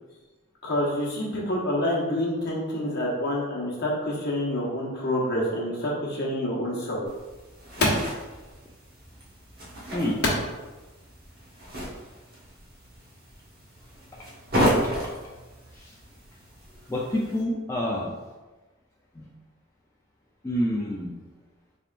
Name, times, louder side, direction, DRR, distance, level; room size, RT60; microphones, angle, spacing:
voice 1, 0.6-7.0, left 1 dB, 55° left, -4 dB, 1.1 m, -27 dB
sound 1, 7.1-17.4, equal, 50° right, 1.1 m, -33 dB
voice 2, 16.9-18.1 19.2-19.3 20.4-21.1, left 1 dB, 15° left, -4 dB, 0.3 m, -28 dB
4.4 x 3.4 x 2.4 m, 1.2 s
head